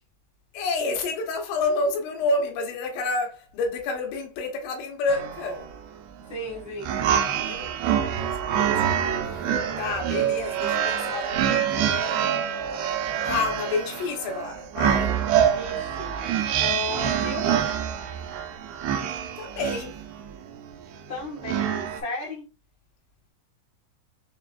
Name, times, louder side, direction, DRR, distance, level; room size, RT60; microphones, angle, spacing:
voice 1, 0.5-5.7 7.4-8.0 8.6-9.1 9.8-12.4 13.3-15.1 19.4-20.0, left 3 dB, 85° left, 3.5 m, -29 dB
sound 1, 5.1-22.0, right 9 dB, 85° right, 2.3 m, -26 dB
voice 2, 6.3-7.0 15.5-16.2 16.6-17.6 21.1-22.5, left 2 dB, 25° left, 0.7 m, -34 dB
7.1 x 2.4 x 2.3 m
omnidirectional pair, 5.2 m